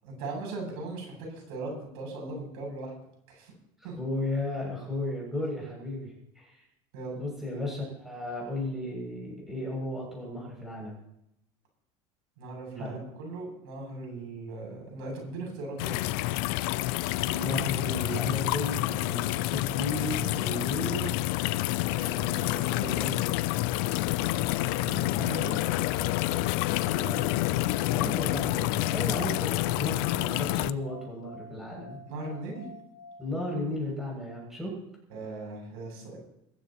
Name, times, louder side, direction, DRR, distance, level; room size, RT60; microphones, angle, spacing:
voice 1, 0.0-2.9 3.3-3.5 3.8-3.9 6.9-7.2 12.4-16.0 24.7-25.6 32.1-32.7 35.1-36.2, right 2 dB, 85° right, 1 dB, 7.9 m, -38 dB
voice 2, 3.8-6.6 7.1-11.0 12.8-13.0 17.3-21.1 21.9-23.2 26.7-27.3 27.9-32.0 33.2-34.9, left 1 dB, 5° right, -3 dB, 7.2 m, -35 dB
sound 1, 15.8-30.7, left 17 dB, 65° left, 0.5 m, -28 dB
sound 2, 15.9-33.7, left 2 dB, 45° left, 2.5 m, -50 dB
22.5 x 15.5 x 3.1 m, 0.80 s
cardioid pair, 165°, 12 cm